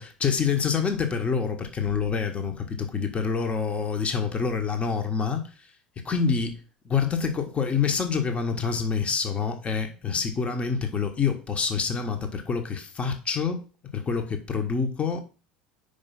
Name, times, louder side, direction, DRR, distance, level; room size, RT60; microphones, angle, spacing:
voice 1, 0.0-5.7 6.0-13.6 13.9-15.2, left 5 dB, 30° left, 1.2 m, -27 dB
5.2 x 4.9 x 5.8 m
hypercardioid pair, 75°, 4 cm